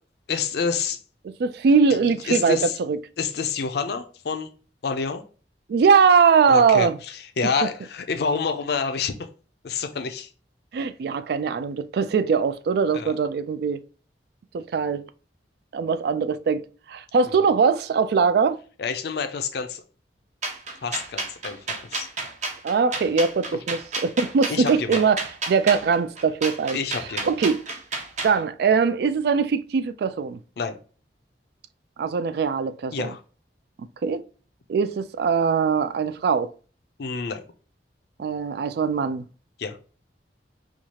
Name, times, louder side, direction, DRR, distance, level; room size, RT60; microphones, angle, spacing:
voice 1, 0.3-1.0 2.3-2.8 3.2-4.5 4.8-5.2 6.5-9.3 9.6-10.3 12.9-13.1 17.3-17.4 18.8-19.8 20.8-22.1 24.5-25.0 26.7-27.3 30.6-30.8 32.9-33.2 37.0-37.4 39.6-39.8, left 5 dB, 60° left, 0.5 m, -28 dB
voice 2, 1.2-3.0 5.7-7.0 10.7-13.8 14.5-15.1 15.7-18.6 22.6-25.2 25.5-26.8 27.2-27.6 28.2-30.4 32.0-33.1 34.0-34.2 34.7-36.5 38.2-39.2, right 5 dB, 60° right, 0.3 m, -21 dB
sound 1, 20.4-28.4, right 3 dB, 45° right, 0.8 m, -31 dB
4.5 x 2.4 x 2.8 m
head